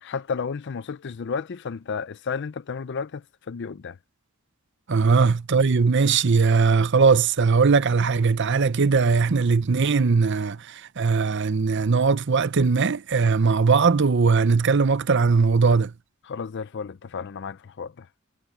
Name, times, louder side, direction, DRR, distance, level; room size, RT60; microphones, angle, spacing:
voice 1, 0.0-4.0 5.1-5.2 16.2-18.1, left 5 dB, 50° left, 0.4 m, -32 dB
voice 2, 4.9-15.9, right 4 dB, 55° right, 0.6 m, -20 dB
head